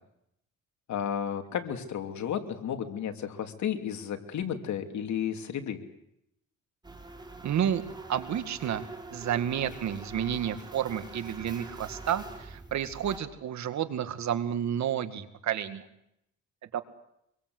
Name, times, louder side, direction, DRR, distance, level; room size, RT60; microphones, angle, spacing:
voice 1, 0.9-5.8, left 8 dB, 70° left, 6 dB, 2.9 m, -33 dB
sound 1, 6.8-13.2, right 2 dB, 15° right, 4.8 m, -44 dB
voice 2, 7.4-7.8 8.1-8.8 9.1-15.8 16.7-16.8, right 9 dB, 65° right, 10 dB, 2.1 m, -30 dB
25.0 x 23.0 x 8.0 m, 0.80 s
cardioid pair, 90°, 30 cm